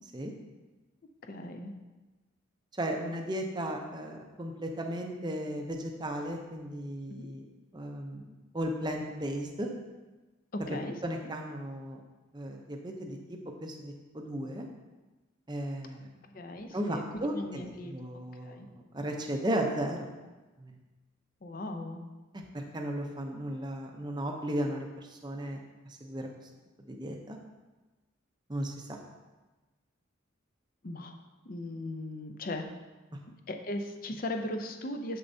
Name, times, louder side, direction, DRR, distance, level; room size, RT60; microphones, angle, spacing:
voice 1, 1.3-1.7 7.1-7.3 10.5-11.0 16.3-17.0 17.3-17.9 18.4-18.7 21.4-22.0 30.8-31.1 31.4-32.7 33.5-35.2, left 1 dB, 45° left, 5 dB, 0.5 m, -37 dB
voice 2, 2.8-7.4 7.7-9.7 10.7-10.8 11.0-12.0 12.3-14.7 15.5-16.4 16.7-20.1 20.6-20.7 22.3-25.6 26.0-26.3 26.9-27.4 28.5-29.0, right 1 dB, 20° right, 2 dB, 0.6 m, -35 dB
7.0 x 6.5 x 2.7 m, 1.2 s
head